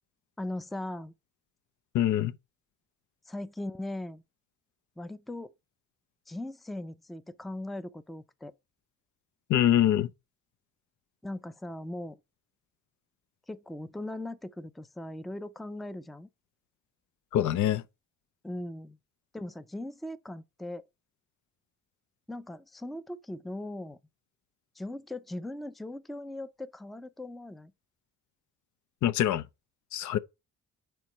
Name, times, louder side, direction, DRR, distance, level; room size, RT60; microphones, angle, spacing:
voice 1, 0.4-1.1 3.3-4.2 5.0-5.5 6.3-8.5 11.2-12.2 13.5-16.3 18.4-19.0 19.3-20.9 22.3-24.0 24.8-27.7, left 1 dB, ahead, 0.4 m, -39 dB
voice 2, 1.9-2.3 9.5-10.1 17.3-17.8 29.0-29.4 29.9-30.2, left 11 dB, 75° left, 0.6 m, -24 dB
4.6 x 4.4 x 5.3 m
cardioid pair, 90°, 30 cm